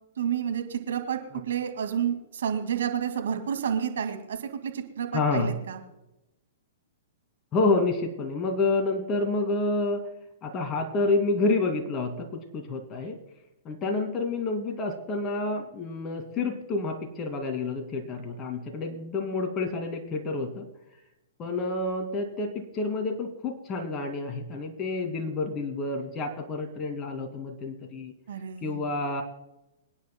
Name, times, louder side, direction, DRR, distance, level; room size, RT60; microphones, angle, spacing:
voice 1, 0.2-1.2 1.5-4.4 4.6-5.8 28.3-28.9, right 8 dB, 70° right, 6 dB, 2.2 m, -30 dB
voice 2, 5.1-5.6 7.5-10.0 10.4-13.2 13.6-20.7 21.4-28.1 28.6-29.2, left 3 dB, 30° left, 5 dB, 2.4 m, -29 dB
25.0 x 10.0 x 2.2 m, 0.92 s
hypercardioid pair, 120°, 0 cm